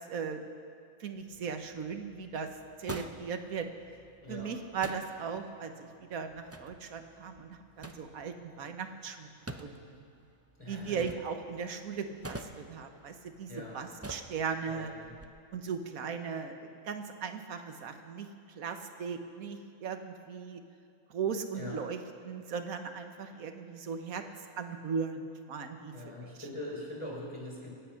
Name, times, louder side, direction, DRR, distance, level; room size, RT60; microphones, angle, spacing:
voice 1, 0.1-0.5 1.0-2.5 2.8-3.7 4.3-9.3 9.6-10.0 10.7-14.9 15.5-20.6 21.1-24.2 24.6-26.3, right 6 dB, 90° right, 7 dB, 1.5 m, -38 dB
sound 1, 1.1-15.2, right 2 dB, 20° right, 0.4 m, -49 dB
voice 2, 10.6-11.0 13.5-13.8 14.7-15.1 21.5-21.8 25.9-27.7, left 1 dB, 25° left, -4 dB, 4.2 m, -42 dB
24.5 x 9.1 x 5.8 m, 2.3 s
omnidirectional pair, 1.4 m